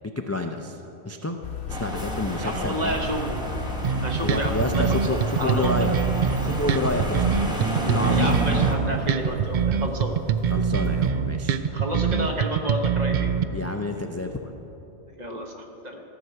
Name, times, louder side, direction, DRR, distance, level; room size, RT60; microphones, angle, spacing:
voice 1, 0.2-0.8 1.0-1.4 1.7-3.0 4.2-5.9 6.4-7.3 7.8-8.5 10.5-11.6 13.5-14.6, left 2 dB, 25° left, 4 dB, 0.3 m, -29 dB
sound 1, 1.4-11.1, left 4 dB, 70° left, 1.2 m, -36 dB
sound 2, 1.7-8.7, equal, 5° right, 1.2 m, -30 dB
voice 2, 2.4-3.6 4.0-6.0 8.1-10.1 11.7-13.3 15.2-16.0, right 1 dB, 40° right, 2 dB, 1.3 m, -30 dB
sound 3, 3.8-13.4, right 7 dB, 60° right, 0.5 m, -24 dB
14.5 x 6.0 x 7.9 m, 2.9 s
omnidirectional pair, 1.2 m